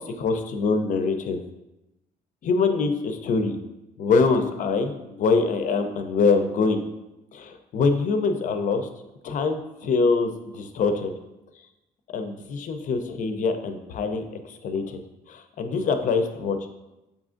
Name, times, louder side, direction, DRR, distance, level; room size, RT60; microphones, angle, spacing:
voice 1, 0.1-1.4 2.4-3.6 4.0-6.8 7.3-8.9 9.2-11.1 12.1-15.0 15.3-16.6, left 4 dB, 50° left, 7 dB, 0.5 m, -24 dB
6.7 x 2.5 x 2.5 m, 0.97 s
cardioid pair, 110°, 17 cm